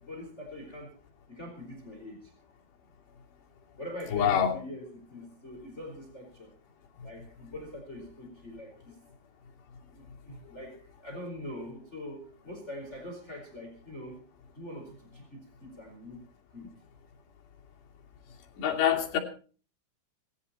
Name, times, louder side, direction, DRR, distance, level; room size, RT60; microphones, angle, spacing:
voice 1, 0.0-0.9 1.3-2.2 3.8-6.5 7.0-8.9 9.9-10.7 11.0-14.2 14.6-16.2 16.5-16.7, left 1 dB, 15° left, 2 dB, 4.4 m, -43 dB
voice 2, 4.1-4.6 18.6-19.2, left 9 dB, 90° left, 1 dB, 5.0 m, -25 dB
20.0 x 15.5 x 4.3 m, 0.39 s
omnidirectional pair, 4.6 m